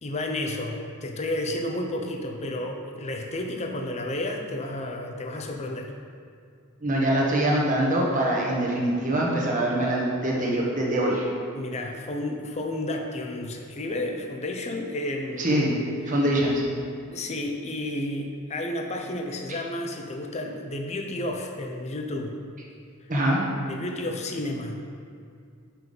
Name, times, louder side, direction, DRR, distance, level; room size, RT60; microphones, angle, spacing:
voice 1, 0.0-5.9 11.5-16.2 17.1-22.3 23.7-24.8, left 1 dB, 30° left, 2 dB, 0.6 m, -31 dB
voice 2, 6.8-11.3 15.4-15.7 16.1-16.6 23.1-23.4, right 1 dB, 35° right, -3 dB, 1.3 m, -23 dB
5.8 x 5.5 x 5.4 m, 2.3 s
head